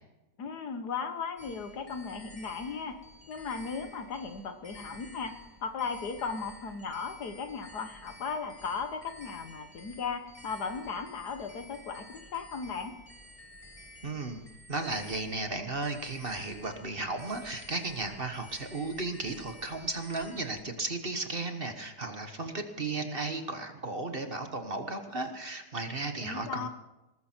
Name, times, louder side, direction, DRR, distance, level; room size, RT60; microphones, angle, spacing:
voice 1, 0.4-3.0 3.3-5.4 5.6-12.9 26.2-26.7, left 5 dB, 70° left, 7 dB, 1.9 m, -36 dB
sound 1, 1.4-20.6, left 1 dB, 20° left, 1.8 m, -52 dB
voice 2, 14.0-14.4 14.7-26.7, right 3 dB, 35° right, 6 dB, 1.4 m, -35 dB
19.0 x 14.5 x 4.5 m, 0.98 s
omnidirectional pair, 1.8 m